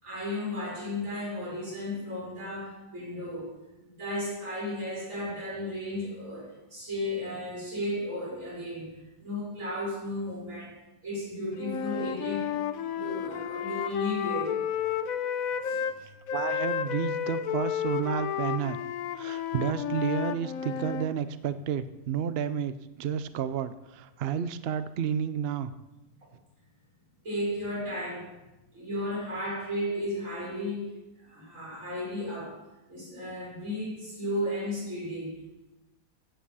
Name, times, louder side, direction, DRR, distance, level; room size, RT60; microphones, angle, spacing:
voice 1, 0.0-3.6 3.8-8.9 9.2-10.8 11.0-12.5 12.8-14.6 15.6-15.8 27.2-28.3 28.7-32.6 32.9-35.3, left 1 dB, 50° right, -4 dB, 6.1 m, -34 dB
Wind instrument woodwind instrument, 11.6-16.0 16.3-21.1, left 9 dB, 65° left, 1.1 m, -32 dB
voice 2, 16.3-18.8 19.2-25.7, right 8 dB, 65° right, 12 dB, 0.6 m, -31 dB
16.0 x 8.7 x 5.5 m, 0.99 s
omnidirectional pair, 1.8 m